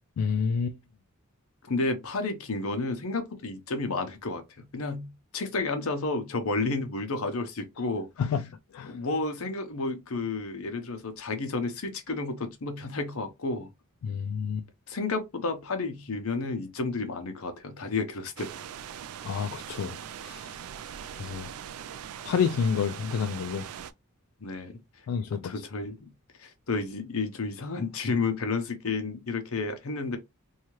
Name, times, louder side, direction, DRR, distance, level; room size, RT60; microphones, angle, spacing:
voice 1, 0.2-0.7 8.2-8.5 8.7-8.9 14.0-14.6 19.2-20.0 20.2-20.4 21.2-21.5 22.2-23.7 25.1-25.5, left 6 dB, 90° left, 0.3 m, -28 dB
voice 2, 1.7-8.4 8.9-13.7 14.9-18.5 24.4-24.8 25.3-26.1 26.4-30.2, left 3 dB, 70° left, 0.7 m, -31 dB
sound 1, 18.4-23.9, right 9 dB, 80° right, 0.3 m, -41 dB
2.7 x 2.3 x 3.0 m
head